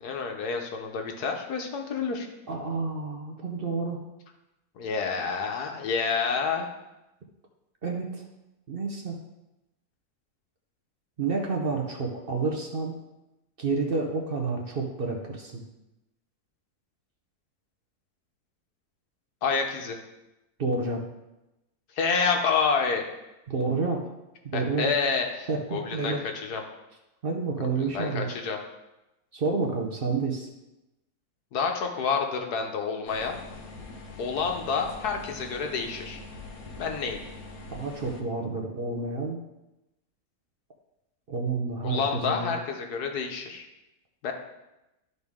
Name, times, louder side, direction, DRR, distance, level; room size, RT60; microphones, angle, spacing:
voice 1, 0.0-2.3 4.8-6.7 19.4-20.0 22.0-23.0 24.5-26.6 27.8-28.6 31.5-33.4 34.2-36.2 36.8-37.2 41.8-43.7 44.2-44.3, left 5 dB, 90° left, 3 dB, 1.5 m, -28 dB
voice 2, 2.5-4.0 7.8-8.2 8.7-9.2 11.2-12.9 13.6-15.6 20.6-21.0 23.5-24.1 24.4-24.9 25.5-26.2 27.2-28.3 29.3-30.5 37.7-39.4 41.3-42.5, right 4 dB, 45° right, 1 dB, 0.8 m, -29 dB
sound 1, 33.1-38.2, left 2 dB, 70° left, 1.4 m, -43 dB
12.0 x 4.0 x 3.6 m, 0.96 s
omnidirectional pair, 1.6 m